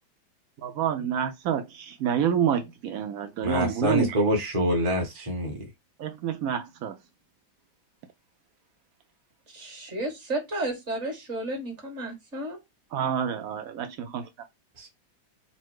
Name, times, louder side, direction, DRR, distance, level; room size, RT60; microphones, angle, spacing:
voice 1, 0.6-4.2 6.0-7.0 12.9-14.3, right 8 dB, 85° right, 0.7 m, -28 dB
voice 2, 3.4-5.7 14.8-14.9, equal, 20° right, 0.9 m, -26 dB
voice 3, 9.5-12.6, right 2 dB, 40° right, 1.7 m, -32 dB
4.2 x 2.1 x 4.6 m
omnidirectional pair, 2.2 m